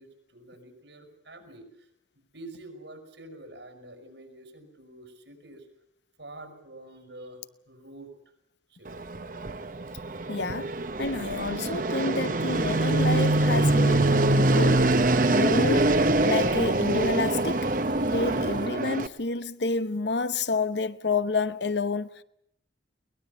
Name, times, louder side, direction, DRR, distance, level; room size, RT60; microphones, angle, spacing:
voice 1, 0.0-1.9 2.3-5.7 6.2-8.1 8.7-9.1, right 1 dB, 80° right, 6.5 m, -47 dB
Fixed-wing aircraft airplane, 8.9-19.1, right 2 dB, 45° right, 0.9 m, -24 dB
voice 2, 10.3-14.9 15.3-22.2, left 3 dB, 75° left, 1.0 m, -29 dB
sound 1, 12.5-18.7, right 1 dB, 25° right, 1.0 m, -37 dB
22.5 x 20.0 x 8.4 m
head